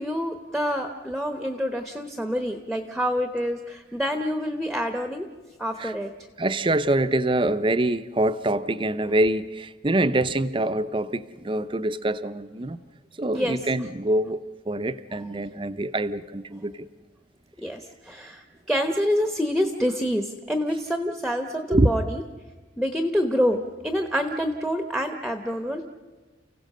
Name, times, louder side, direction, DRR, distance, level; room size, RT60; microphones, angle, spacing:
voice 1, 0.0-5.2 5.6-6.1 13.3-13.6 17.6-17.8 18.1-18.4 18.7-22.2 22.8-25.9, equal, ahead, 0.9 m, -27 dB
voice 2, 6.4-12.8 13.2-16.9 21.7-22.0, right 1 dB, 25° right, 0.6 m, -25 dB
29.5 x 16.0 x 6.6 m
head